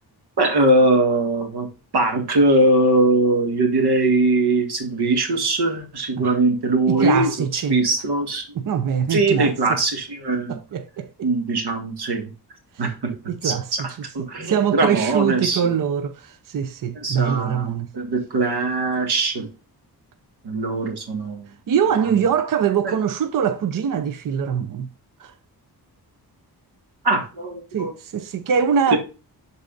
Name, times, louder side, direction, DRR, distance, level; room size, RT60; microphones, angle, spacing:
voice 1, 0.4-1.7 1.9-8.4 9.1-10.6 11.2-12.3 12.8-13.1 13.4-15.8 17.0-19.5 20.4-21.4 22.8-23.0 27.0-27.9 28.9-29.0, right 2 dB, 90° right, 1.8 m, -21 dB
voice 2, 6.9-7.8 8.6-9.8 10.5-11.3 13.1-13.7 14.4-17.9 21.7-24.9 25.2-25.3 27.7-29.0, right 7 dB, 60° right, 0.6 m, -23 dB
12.0 x 4.1 x 2.5 m
wide cardioid pair, 145°, 38 cm